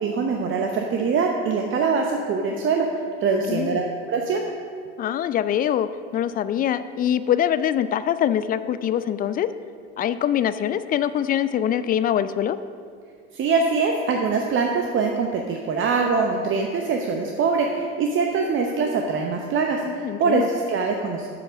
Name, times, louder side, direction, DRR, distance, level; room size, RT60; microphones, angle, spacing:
voice 1, 0.0-2.9 3.2-4.4 13.3-21.3, right 4 dB, 35° right, 2 dB, 0.9 m, -23 dB
voice 2, 3.5-3.8 5.0-9.5 10.0-12.6 19.8-20.5, left 10 dB, 25° left, 14 dB, 0.3 m, -24 dB
7.4 x 6.8 x 6.1 m, 2.2 s
hypercardioid pair, 80°, 33 cm